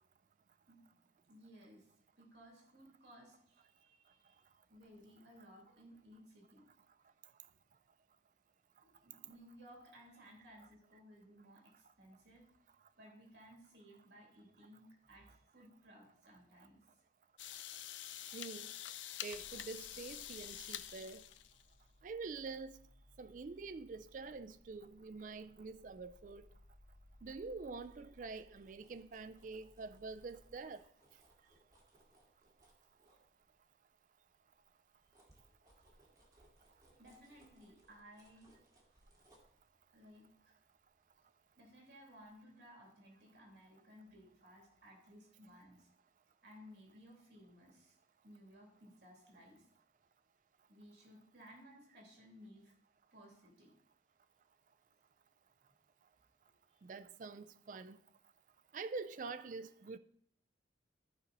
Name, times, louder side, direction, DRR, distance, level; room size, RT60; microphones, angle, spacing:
voice 1, 1.3-1.9 2.2-6.6 9.0-12.5 12.9-16.8 37.0-38.5 39.9-40.6 41.6-45.9 46.4-48.0 48.2-49.6 50.7-52.7 53.1-53.7 56.7-56.8, equal, 65° right, 3.0 m, -59 dB
sound 1, 17.4-21.7, left 11 dB, 80° left, 0.5 m, -47 dB
voice 2, 18.3-18.7 19.2-21.2 22.0-22.8 23.2-26.5 27.2-30.8 56.8-58.0 58.7-60.0, right 4 dB, 45° right, 0.3 m, -46 dB
sound 2, 19.3-30.6, left 1 dB, 35° left, 0.8 m, -65 dB
sound 3, 27.8-33.8 34.3-41.8 42.2-42.3, right 1 dB, 20° right, 2.2 m, -70 dB
13.5 x 5.2 x 4.2 m
head